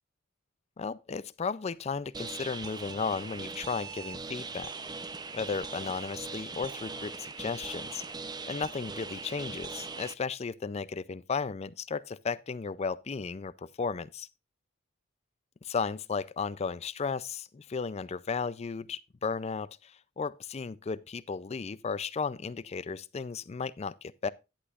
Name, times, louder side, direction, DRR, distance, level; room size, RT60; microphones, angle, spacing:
voice 1, 0.8-4.7 5.3-8.0 8.5-14.3 15.6-24.3, left 5 dB, 30° left, 0.4 m, -35 dB
sound 1, 2.1-10.1, right 4 dB, 20° right, 0.6 m, -40 dB
11.0 x 10.0 x 2.4 m
head